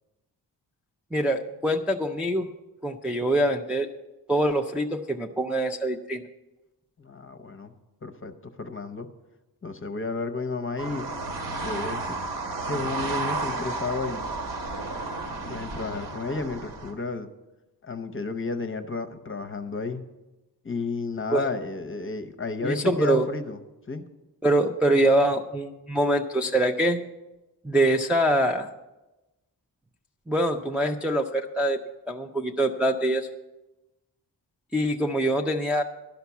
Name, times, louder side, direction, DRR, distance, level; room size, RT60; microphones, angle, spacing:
voice 1, 1.1-2.5 2.8-3.9 4.3-6.2 21.3-21.5 22.6-23.3 24.4-27.0 27.6-28.7 30.3-31.8 32.1-33.3 34.7-35.8, right 1 dB, 5° right, 2 dB, 0.4 m, -24 dB
voice 2, 7.0-7.7 8.0-9.1 9.6-11.1 11.6-12.2 12.7-14.3 15.5-17.3 17.8-20.0 20.6-23.6 23.9-24.1, left 3 dB, 30° left, 9 dB, 0.7 m, -32 dB
sound 1, 10.8-16.9, right 3 dB, 85° right, 2.1 m, -32 dB
12.0 x 5.8 x 8.2 m, 1.0 s
wide cardioid pair, 155°, 42 cm